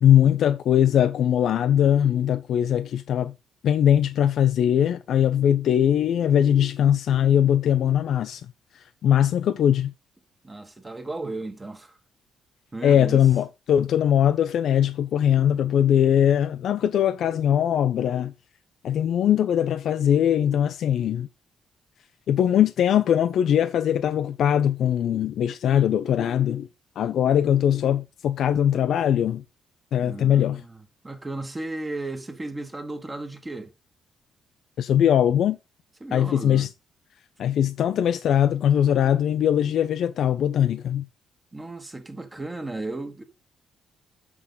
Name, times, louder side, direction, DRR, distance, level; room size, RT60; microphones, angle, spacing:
voice 1, 0.0-3.3 3.6-8.4 9.0-9.9 12.8-18.3 18.8-21.3 22.3-26.7 27.0-29.4 29.9-30.6 34.8-35.6 36.1-36.7 37.4-41.0, left 10 dB, 70° left, 0.5 m, -21 dB
voice 2, 10.4-11.9 12.7-13.3 30.0-33.7 36.0-36.7 41.5-43.2, right 2 dB, 20° right, 1.5 m, -35 dB
6.6 x 6.1 x 3.9 m
cardioid pair, 90°, 0 cm